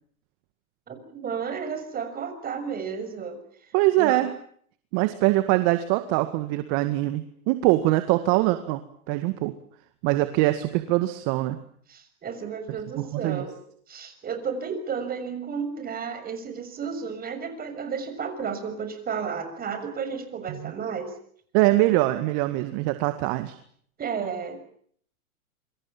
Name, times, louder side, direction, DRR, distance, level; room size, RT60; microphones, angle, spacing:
voice 1, 0.9-3.4 4.0-4.3 11.9-13.5 13.9-21.1 24.0-24.6, right 6 dB, 20° right, 9 dB, 6.6 m, -32 dB
voice 2, 3.7-4.3 4.9-8.8 9.1-9.5 10.0-11.6 13.1-13.5 20.5-20.7 21.5-23.6, right 17 dB, 40° right, 10 dB, 2.0 m, -23 dB
27.5 x 25.5 x 7.3 m, 0.63 s
hypercardioid pair, 120°, 43 cm